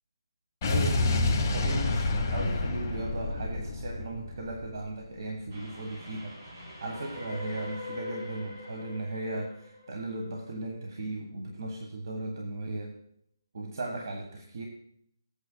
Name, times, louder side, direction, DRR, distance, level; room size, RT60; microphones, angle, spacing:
Explosion, 0.6-4.9, left 2 dB, 20° left, 1.1 m, -28 dB
voice 1, 0.6-6.4 6.8-13.0 13.5-14.7, right 2 dB, 60° right, 2 dB, 1.3 m, -36 dB
Train, 5.5-10.8, left 2 dB, 40° right, 3.5 m, -43 dB
16.0 x 8.5 x 2.2 m, 0.68 s
hypercardioid pair, 170°, 2 cm